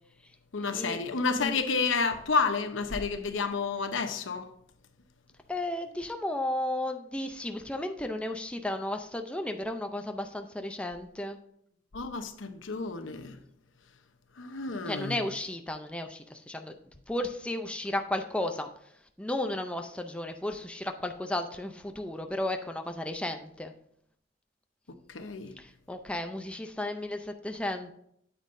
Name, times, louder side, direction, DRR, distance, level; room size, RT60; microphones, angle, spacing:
voice 1, 0.5-4.5 11.9-13.4 14.4-15.2 25.1-25.5, left 4 dB, 85° left, 0.8 m, -30 dB
voice 2, 5.5-11.4 14.9-16.8 17.1-18.7 19.2-23.7 25.6-27.9, left 1 dB, 5° left, 0.5 m, -34 dB
9.2 x 8.2 x 2.6 m
head